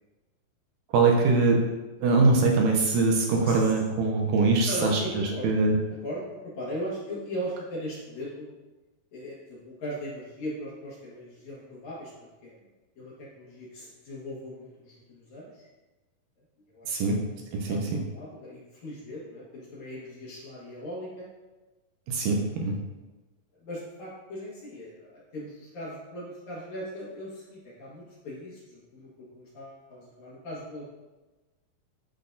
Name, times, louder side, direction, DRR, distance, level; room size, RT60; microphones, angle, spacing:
voice 1, 0.9-1.6 2.0-5.0 5.4-5.7 16.9-17.2 17.5-18.0 22.1-22.7, right 3 dB, 80° right, 1 dB, 2.2 m, -22 dB
voice 2, 4.6-5.5 5.9-8.5 9.1-12.6 13.0-15.7 16.7-17.2 17.7-17.8 18.0-21.3 23.6-30.9, equal, 60° left, -6 dB, 2.4 m, -39 dB
10.0 x 4.0 x 2.6 m, 1.2 s
omnidirectional pair, 4.3 m